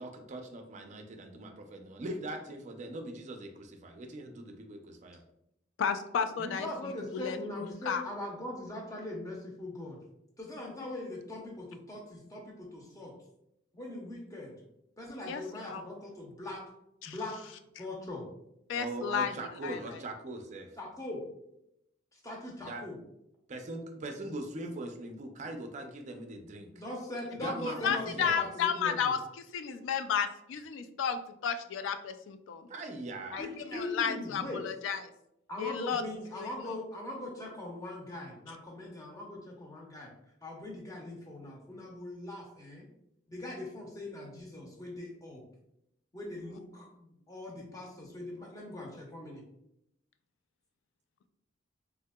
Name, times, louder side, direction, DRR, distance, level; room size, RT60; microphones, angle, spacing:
voice 1, 0.0-5.2 18.7-20.7 22.6-22.8 23.5-26.7 27.3-28.4 32.7-33.5, right 2 dB, 40° right, 5 dB, 0.4 m, -41 dB
voice 2, 5.8-8.0 10.6-10.7 15.3-15.4 15.7-15.8 17.0-17.2 18.7-19.3 19.6-19.9 27.4-32.7 33.3-35.1 35.6-36.0 36.4-36.5, left 7 dB, 75° left, 9 dB, 0.3 m, -33 dB
voice 3, 6.4-10.0 10.4-13.1 13.7-14.5 15.0-16.6 17.1-17.5 17.8-18.3 20.8-21.2 22.1-23.0 26.7-29.1 33.4-34.6 35.5-40.1 40.4-42.9 43.3-45.4 46.1-49.4, left 1 dB, 20° left, -1 dB, 0.6 m, -41 dB
3.4 x 2.8 x 2.2 m, 0.81 s
head